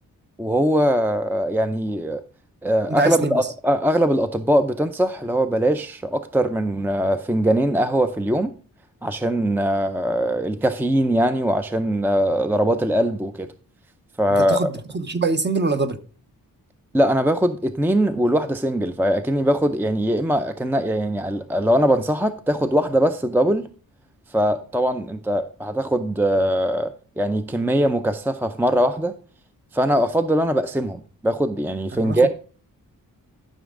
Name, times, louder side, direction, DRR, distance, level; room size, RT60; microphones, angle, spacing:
voice 1, 0.4-2.2 2.6-8.5 9.0-13.5 14.2-14.7 16.9-23.7 24.3-29.1 29.7-32.3, equal, 5° right, 0.5 m, -21 dB
voice 2, 3.0-3.4 14.5-14.7 14.9-16.0 31.9-32.3, right 3 dB, 30° right, 0.9 m, -23 dB
13.0 x 6.2 x 3.7 m
wide cardioid pair, 130°, 35 cm